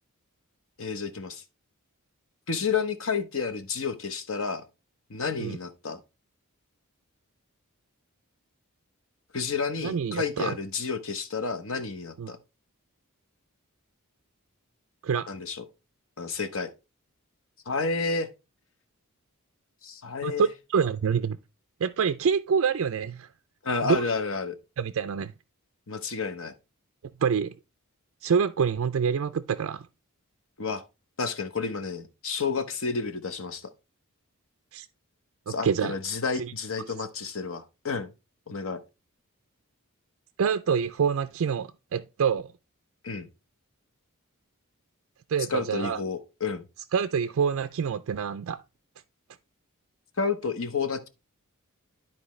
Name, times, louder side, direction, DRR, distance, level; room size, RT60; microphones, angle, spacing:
voice 1, 0.8-1.4 2.5-4.6 5.1-6.0 9.3-12.4 15.3-15.6 16.2-16.7 17.7-18.3 19.8-20.5 23.6-24.5 25.9-26.5 30.6-30.8 31.2-33.6 35.5-38.1 38.5-38.8 43.0-43.3 45.5-46.6 50.2-51.1, left 4 dB, 60° left, 1.0 m, -30 dB
voice 2, 9.8-10.5 12.2-12.3 15.0-15.3 20.2-21.4 21.8-23.3 23.8-24.0 24.8-25.3 27.2-27.5 28.2-29.9 34.7-34.9 35.5-35.9 40.4-42.5 45.3-46.0 46.9-48.6, right 6 dB, 65° right, 0.4 m, -26 dB
12.5 x 4.4 x 3.1 m
head